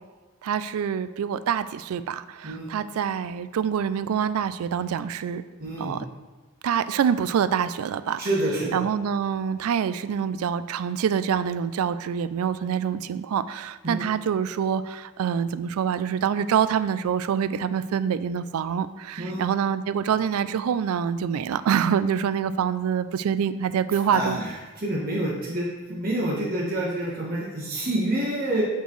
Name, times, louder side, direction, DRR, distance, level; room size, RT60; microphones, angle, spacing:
voice 1, 0.4-5.4 5.8-6.1 6.6-8.2 8.7-24.4, right 7 dB, 80° right, 14 dB, 0.3 m, -26 dB
voice 2, 2.4-2.7 5.6-6.0 8.2-8.8 13.8-14.0 19.2-19.5 24.1-24.5 24.8-28.6, right 1 dB, 40° right, -4 dB, 1.2 m, -27 dB
8.1 x 4.4 x 3.1 m, 1.3 s
head